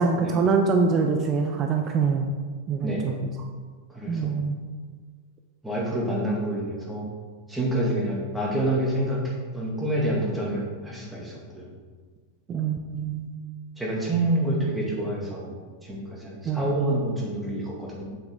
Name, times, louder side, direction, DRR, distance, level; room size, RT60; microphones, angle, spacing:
voice 1, 0.0-2.4 2.7-3.3 4.1-4.6 12.5-13.3 16.4-16.7, right 4 dB, 30° right, 4 dB, 0.7 m, -24 dB
voice 2, 3.9-4.4 5.6-7.1 7.5-11.7 13.8-18.0, right 1 dB, 5° right, -4 dB, 2.2 m, -27 dB
8.0 x 7.3 x 3.6 m, 1.5 s
figure-of-eight pair, 90°, 0 cm